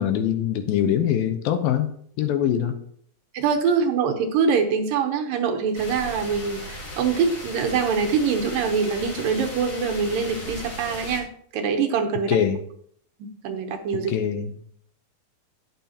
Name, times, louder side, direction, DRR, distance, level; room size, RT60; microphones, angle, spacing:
voice 1, 0.0-1.9 2.2-2.8 12.3-12.6 14.1-14.6, left 9 dB, 80° left, 8 dB, 2.4 m, -23 dB
voice 2, 3.3-11.3 11.5-12.4 13.4-14.1, right 6 dB, 75° right, 5 dB, 2.4 m, -24 dB
sound 1, 5.7-11.2, left 1 dB, 30° left, 2.6 m, -37 dB
12.0 x 9.3 x 2.9 m, 0.63 s
omnidirectional pair, 4.4 m